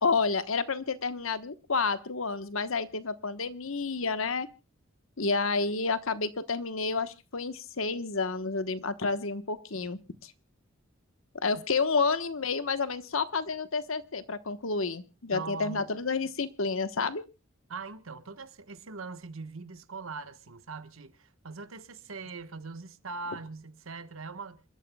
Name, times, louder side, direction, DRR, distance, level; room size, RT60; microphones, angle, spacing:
voice 1, 0.0-4.5 5.2-10.3 11.4-17.2, left 4 dB, 85° left, 1.2 m, -30 dB
voice 2, 15.3-15.9 17.7-24.6, right 4 dB, 90° right, 1.3 m, -41 dB
28.0 x 13.0 x 2.3 m
head